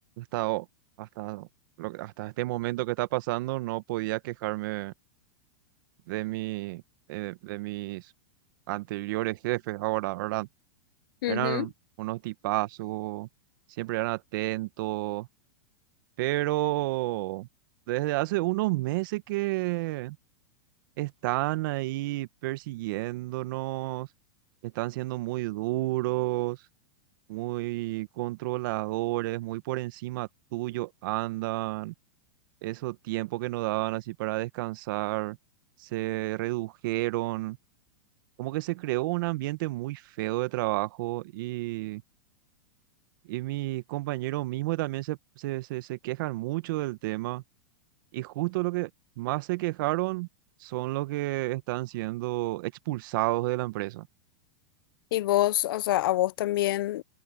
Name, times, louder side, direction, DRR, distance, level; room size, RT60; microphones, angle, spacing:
voice 1, 0.2-0.6 1.0-1.5 1.8-4.9 6.1-6.8 7.1-8.1 8.7-10.5 11.3-11.7 12.0-13.3 13.8-15.3 16.2-17.5 17.9-20.2 21.0-24.1 24.6-26.6 27.3-31.9 32.6-35.4 35.8-37.6 38.4-42.0 43.3-47.4 48.1-48.9 49.2-50.3 50.6-54.1, right 19 dB, 60° right, 1.4 m, -31 dB
voice 2, 11.2-11.7 55.1-57.0, left 15 dB, 70° left, 0.5 m, -26 dB
hypercardioid pair, 115°, 12 cm